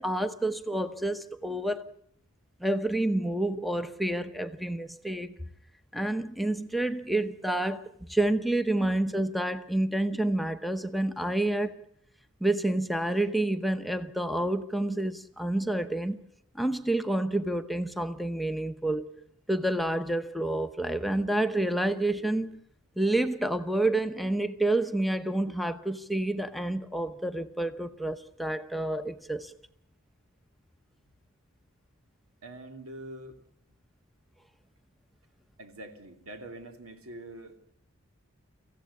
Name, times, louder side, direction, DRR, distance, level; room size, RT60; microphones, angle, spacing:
voice 1, 0.0-1.9 2.6-5.4 5.9-11.8 12.4-16.2 16.5-19.1 19.5-22.6 23.0-29.5, right 1 dB, ahead, 0.8 m, -29 dB
voice 2, 32.4-33.4 35.6-37.6, right 1 dB, 85° right, 3.0 m, -44 dB
25.5 x 15.5 x 8.3 m
head